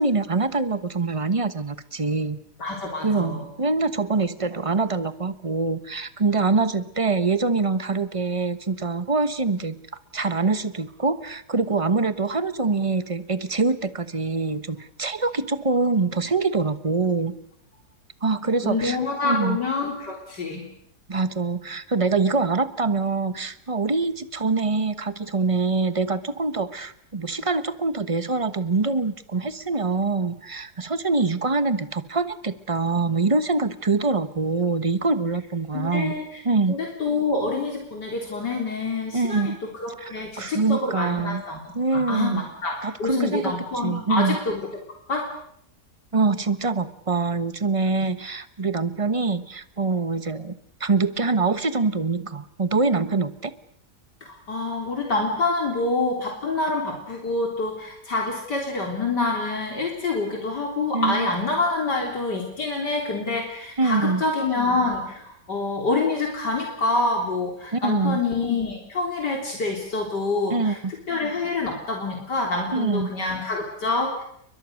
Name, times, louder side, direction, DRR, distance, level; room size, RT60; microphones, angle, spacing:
voice 1, 0.0-2.4 3.0-9.8 10.1-17.3 18.2-19.0 19.2-19.6 21.1-36.1 36.4-36.8 39.1-39.6 40.0-41.4 41.7-42.5 42.8-43.5 43.8-44.4 46.1-53.5 60.9-61.3 63.8-64.2 67.7-68.2 70.5-70.9 72.7-73.1, right 3 dB, 20° right, 12 dB, 1.1 m, -24 dB
voice 2, 2.6-3.4 18.6-20.7 35.7-36.4 36.7-41.6 41.9-44.6 45.1-45.3 54.2-70.8 71.1-74.2, left 3 dB, 75° left, 1 dB, 4.3 m, -26 dB
30.0 x 23.0 x 6.5 m, 0.69 s
omnidirectional pair, 1.8 m